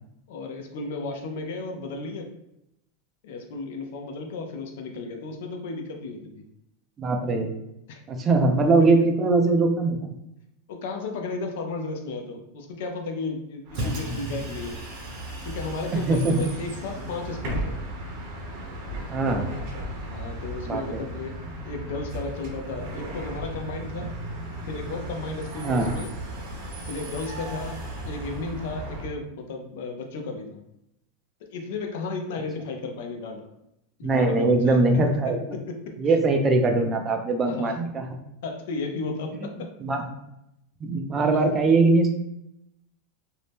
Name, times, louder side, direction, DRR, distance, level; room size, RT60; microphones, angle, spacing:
voice 1, 0.3-2.3 3.2-6.4 7.9-8.0 8.8-8.9 10.7-14.8 15.4-17.7 20.0-21.3 21.6-24.1 24.6-26.1 26.9-30.6 31.4-33.5 34.0-34.8 35.2-35.8 37.5-37.7 38.4-39.7 41.2-41.4, left 3 dB, 70° left, 3 dB, 0.5 m, -34 dB
voice 2, 7.0-7.5 8.1-10.0 13.8-14.3 15.9-16.4 19.1-19.4 20.7-21.0 25.6-25.9 34.0-35.4 36.0-38.0 39.8-40.2 40.8-42.1, right 3 dB, 20° right, 4 dB, 0.4 m, -22 dB
Bus, 13.7-29.1, right 1 dB, 50° right, 0.7 m, -35 dB
2.6 x 2.1 x 3.3 m, 0.83 s
supercardioid pair, 150°, 0 cm